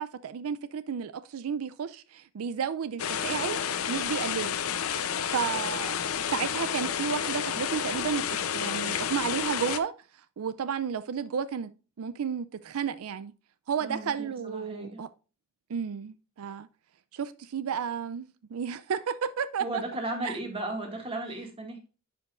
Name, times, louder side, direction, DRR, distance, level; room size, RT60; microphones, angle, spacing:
voice 1, 0.0-3.6 3.9-4.6 5.3-6.0 6.2-9.9 10.4-11.7 12.0-13.3 13.7-15.1 15.7-16.7 17.1-19.8 20.2-20.4, right 7 dB, 90° right, 0.4 m, -32 dB
sound 1, 3.0-9.8, left 8 dB, 80° left, 0.6 m, -30 dB
voice 2, 13.8-15.0 19.6-21.9, right 2 dB, 25° right, 2.0 m, -35 dB
11.0 x 5.2 x 2.4 m
head